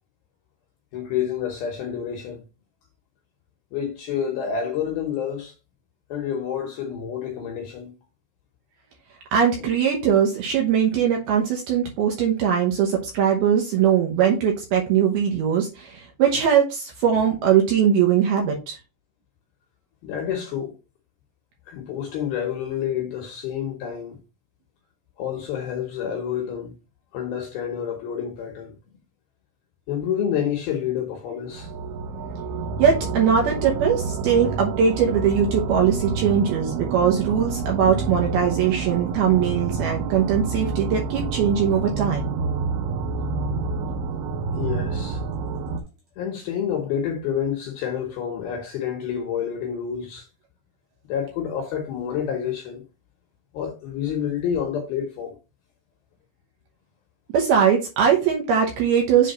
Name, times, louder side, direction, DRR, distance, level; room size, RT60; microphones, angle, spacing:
voice 1, 0.9-2.4 3.7-5.5 6.1-7.9 9.6-9.7 20.0-20.8 21.7-24.2 25.2-26.7 27.1-28.7 29.9-31.7 44.5-45.2 46.2-50.3 51.0-52.8 53.5-55.4, left 8 dB, 75° left, 2.4 m, -28 dB
voice 2, 9.3-18.8 32.8-42.3 57.3-59.3, right 8 dB, 70° right, 2.5 m, -21 dB
sound 1, 31.5-45.8, right 4 dB, 90° right, 2.3 m, -28 dB
7.5 x 3.6 x 4.2 m
omnidirectional pair, 5.6 m